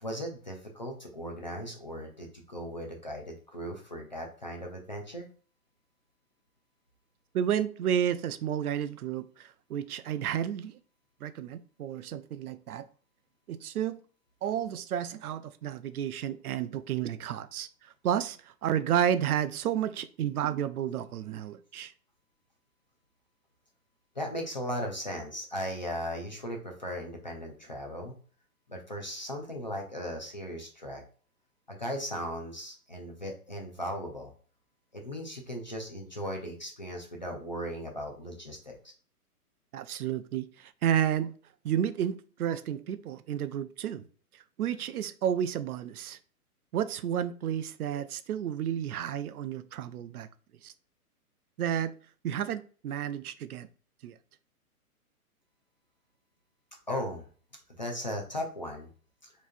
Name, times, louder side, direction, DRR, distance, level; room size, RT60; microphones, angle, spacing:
voice 1, 0.0-5.3 24.2-28.2 28.7-31.0 31.7-34.3 34.9-38.8 56.9-57.3 57.8-58.9 59.2-59.3, equal, 35° left, 0.4 m, -37 dB
voice 2, 7.3-10.7 11.2-12.9 13.5-14.0 14.4-17.7 18.0-21.9 39.7-41.3 41.6-44.0 44.6-46.2 46.7-50.3 50.6-50.7 51.6-51.9 52.2-53.7 54.0-54.1, right 9 dB, 75° right, 0.5 m, -31 dB
4.3 x 3.1 x 2.5 m
hypercardioid pair, 165°, 46 cm